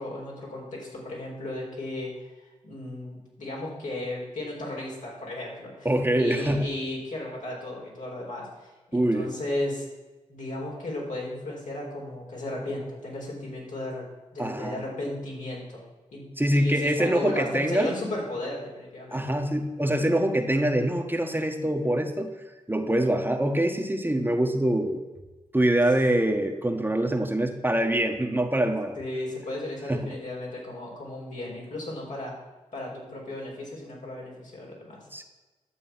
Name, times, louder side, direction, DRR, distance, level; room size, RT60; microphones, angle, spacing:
voice 1, 0.0-2.3 2.6-5.9 6.1-9.8 10.3-14.0 14.3-15.8 16.1-16.2 16.5-19.4 29.0-32.3 32.7-35.0, left 1 dB, 70° left, -4 dB, 4.6 m, -35 dB
voice 2, 5.8-6.7 8.9-9.3 14.4-14.8 16.4-17.9 19.1-22.3 22.7-25.0 25.5-29.0 29.9-30.1 35.1-35.2, right 1 dB, 15° right, 3 dB, 1.5 m, -24 dB
11.5 x 7.5 x 6.0 m, 1.2 s
supercardioid pair, 40°, 14 cm